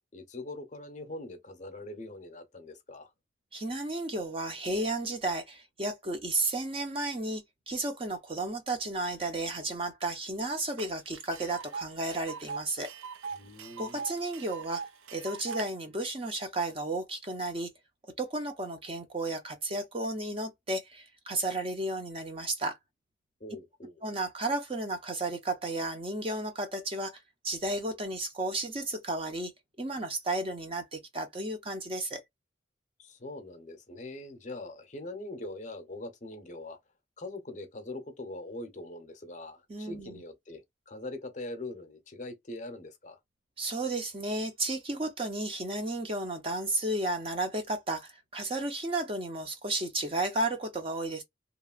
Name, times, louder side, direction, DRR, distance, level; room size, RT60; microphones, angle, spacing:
voice 1, 0.1-3.1 13.3-14.0 23.4-24.0 33.0-36.8 37.2-43.2, left 2 dB, 40° left, 0.6 m, -42 dB
voice 2, 3.5-12.9 13.8-14.8 15.1-17.7 18.2-22.8 24.0-27.1 27.4-29.5 29.8-32.2 39.7-40.2 43.6-51.2, right 2 dB, 30° right, 0.6 m, -33 dB
Tick, 10.8-10.9 11.1-15.7, right 5 dB, 90° right, 0.4 m, -41 dB
2.9 x 2.5 x 2.4 m
head